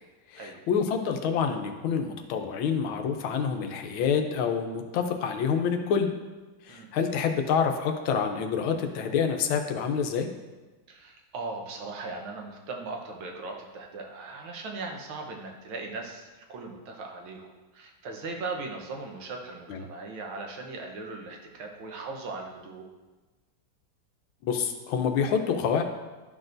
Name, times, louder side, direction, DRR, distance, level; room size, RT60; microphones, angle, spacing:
voice 1, 0.3-6.1 6.6-10.3 19.7-19.8 24.4-25.8, left 6 dB, 85° left, 5 dB, 1.6 m, -27 dB
voice 2, 10.9-22.9, right 3 dB, 85° right, 1 dB, 1.9 m, -39 dB
11.5 x 6.1 x 2.6 m, 1.2 s
omnidirectional pair, 2.2 m